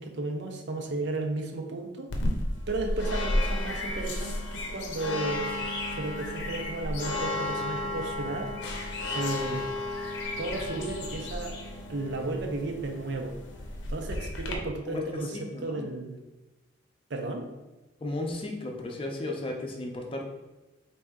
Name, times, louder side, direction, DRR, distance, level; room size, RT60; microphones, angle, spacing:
voice 1, 0.0-2.1 2.7-5.5 5.9-8.6 9.1-9.7 10.4-11.6 11.9-13.3 13.9-16.2 17.1-17.5, right 2 dB, 60° right, 3 dB, 0.6 m, -34 dB
sound 1, 2.1-14.6, left 1 dB, 70° left, 0.6 m, -33 dB
voice 2, 15.3-15.8 18.0-20.2, left 2 dB, 30° left, 1 dB, 0.5 m, -34 dB
4.2 x 2.7 x 3.6 m, 1.0 s
head